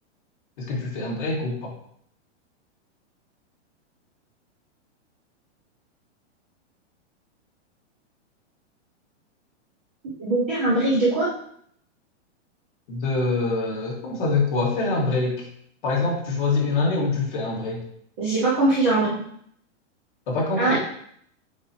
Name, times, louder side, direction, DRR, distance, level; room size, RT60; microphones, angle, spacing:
voice 1, 0.6-1.7 12.9-15.4 15.8-17.8 20.3-20.8, left 3 dB, 45° left, -3 dB, 2.1 m, -25 dB
voice 2, 10.2-11.3 18.2-19.1 20.6-20.8, right 2 dB, 10° right, -8 dB, 0.4 m, -21 dB
8.3 x 4.4 x 3.0 m, 0.67 s
supercardioid pair, 170°, 35 cm